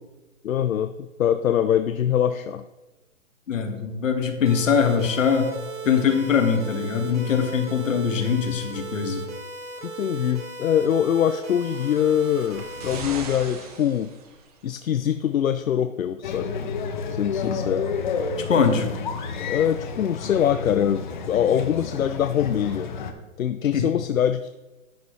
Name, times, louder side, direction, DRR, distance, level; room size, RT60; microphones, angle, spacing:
voice 1, 0.4-2.6 9.8-14.1 14.6-16.6 17.1-17.9 19.5-22.9 23.4-24.5, left 9 dB, 85° left, 10 dB, 0.7 m, -23 dB
voice 2, 3.5-5.5 5.8-9.2 17.4-17.6 18.5-18.9 23.7-23.9, left 6 dB, 70° left, 5 dB, 1.9 m, -22 dB
sound 1, 4.5-13.0, right 4 dB, 90° right, 3.3 m, -37 dB
Energy Weapon Laser, 11.4-14.7 15.7-15.8, right 4 dB, 30° right, 1.1 m, -40 dB
sound 2, 16.2-23.1, left 5 dB, 35° left, 1.0 m, -30 dB
11.0 x 8.2 x 3.3 m, 1.1 s
hypercardioid pair, 160°, 40 cm